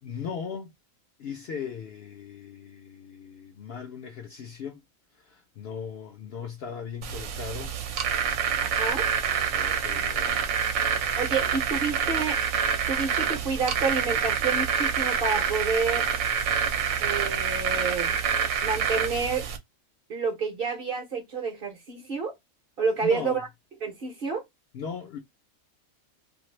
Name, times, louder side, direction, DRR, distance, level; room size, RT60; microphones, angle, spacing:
voice 1, 0.0-0.7 1.2-4.8 5.2-7.8 8.9-9.1 9.4-10.6 23.0-23.4 24.7-25.2, left 6 dB, 65° left, 0.6 m, -38 dB
sound 1, 7.0-19.6, right 7 dB, 75° right, 1.0 m, -27 dB
voice 2, 8.6-9.1 11.2-12.4 12.9-16.1 17.0-18.2 18.6-19.5 20.1-22.3 22.8-23.5 23.8-24.5, right 4 dB, 50° right, 0.8 m, -29 dB
2.5 x 2.4 x 3.0 m
omnidirectional pair, 1.4 m